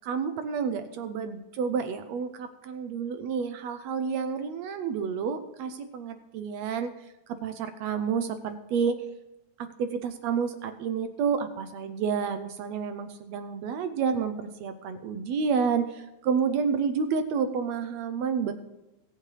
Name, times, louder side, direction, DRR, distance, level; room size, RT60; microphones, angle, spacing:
voice 1, 0.0-6.9 7.3-9.0 9.6-18.5, right 6 dB, 75° right, 9 dB, 1.7 m, -30 dB
18.0 x 8.7 x 3.3 m, 0.99 s
omnidirectional pair, 3.4 m